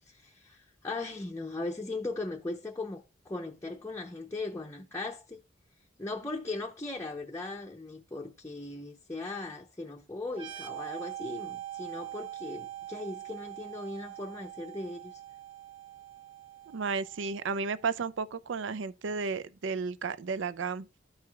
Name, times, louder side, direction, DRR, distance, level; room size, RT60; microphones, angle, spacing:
voice 1, 0.1-5.4 6.0-15.2, left 2 dB, 15° left, 0.6 m, -38 dB
sound 1, 10.3-17.8, right 13 dB, 25° right, 0.9 m, -43 dB
voice 2, 16.7-20.9, right 5 dB, 70° right, 0.5 m, -33 dB
12.5 x 4.7 x 2.3 m
head